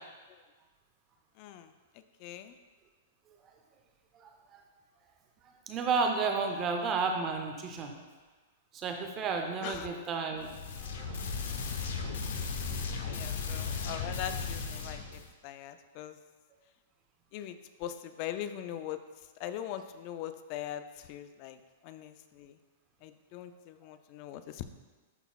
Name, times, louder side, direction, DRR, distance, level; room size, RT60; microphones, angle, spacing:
voice 1, 1.4-1.7 2.2-2.5 9.6-9.9 12.9-16.2 17.3-19.0 19.4-21.6 21.8-22.6 23.0-24.6, left 11 dB, 40° left, 10 dB, 0.3 m, -41 dB
voice 2, 4.1-4.6 5.7-7.9 8.7-10.5 10.8-11.2, right 4 dB, 25° right, 4 dB, 0.5 m, -32 dB
sound 1, 10.4-15.3, left 5 dB, 75° left, 0.7 m, -36 dB
11.0 x 4.0 x 2.3 m, 1.3 s
hypercardioid pair, 160°, 0 cm